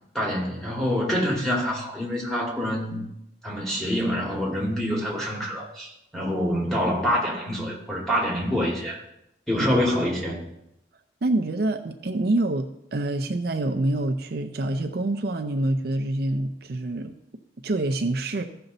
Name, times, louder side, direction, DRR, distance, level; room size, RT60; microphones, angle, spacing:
voice 1, 0.1-3.0 3.4-9.0 9.5-10.5, equal, ahead, -4 dB, 2.2 m, -26 dB
voice 2, 11.2-17.1 17.6-18.4, right 2 dB, 55° right, 5 dB, 0.5 m, -26 dB
14.5 x 5.7 x 4.0 m, 0.82 s
head